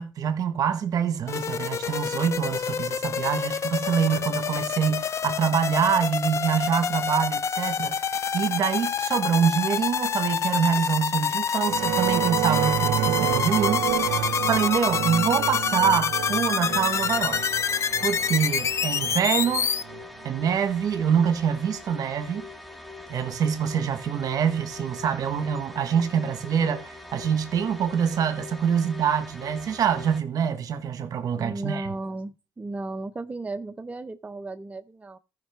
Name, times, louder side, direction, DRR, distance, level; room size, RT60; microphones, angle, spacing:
voice 1, 0.0-17.4 18.0-19.7 20.2-22.5 23.1-31.9, right 7 dB, 55° right, 1.2 m, -25 dB
sound 1, 1.3-19.8, left 7 dB, 40° left, 0.5 m, -27 dB
sound 2, 11.6-20.3, right 14 dB, 85° right, 0.5 m, -29 dB
sound 3, 16.6-30.2, left 2 dB, ahead, 1.0 m, -43 dB
voice 2, 31.4-35.2, right 2 dB, 20° right, 0.5 m, -35 dB
14.5 x 5.4 x 3.4 m
cardioid pair, 95°, 8 cm